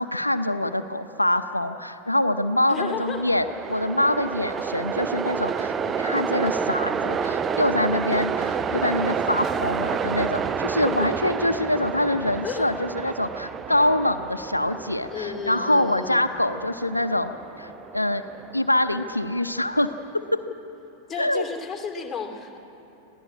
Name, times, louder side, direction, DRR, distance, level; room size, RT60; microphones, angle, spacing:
voice 1, 0.0-17.3 17.6-18.2 18.5-20.4 21.2-21.5, left 1 dB, 85° left, 8 dB, 0.7 m, -25 dB
voice 2, 2.7-3.2 10.8-10.9 12.4-12.7 15.1-16.2 21.1-22.6, left 6 dB, 15° left, 2 dB, 2.7 m, -32 dB
Train, 2.7-19.9, right 6 dB, 20° right, 0.7 m, -30 dB
26.0 x 16.5 x 8.6 m, 2.9 s
figure-of-eight pair, 90°, 0 cm